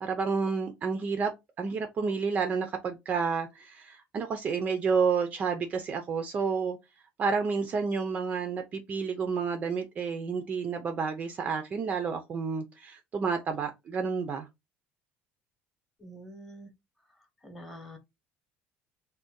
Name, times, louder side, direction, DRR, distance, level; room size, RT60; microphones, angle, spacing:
voice 1, 0.0-1.3 1.6-6.8 7.2-14.5, right 5 dB, 30° right, 0.4 m, -30 dB
voice 2, 16.0-16.7 17.1-18.0, equal, 5° left, 0.9 m, -47 dB
2.6 x 2.1 x 3.5 m
cardioid pair, 145°, 5 cm